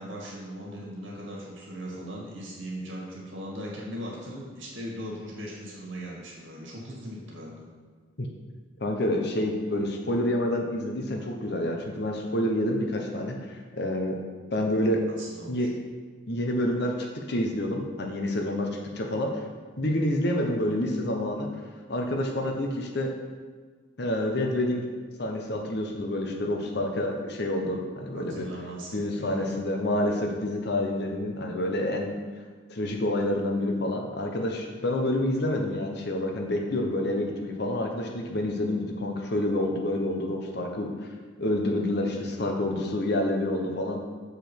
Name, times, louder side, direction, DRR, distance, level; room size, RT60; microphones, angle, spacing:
voice 1, 0.0-7.7 15.2-15.7 28.1-29.6, equal, 75° right, -4 dB, 2.2 m, -39 dB
voice 2, 8.8-14.2 14.5-15.0 15.5-15.7 16.3-17.0 17.3-18.7 18.9-19.4 19.8-21.5 21.9-23.1 24.0-24.9 25.2-28.5 28.9-32.2 32.7-40.9 41.4-44.0, left 1 dB, 55° left, 2 dB, 1.0 m, -28 dB
7.1 x 4.9 x 4.6 m, 1.5 s
head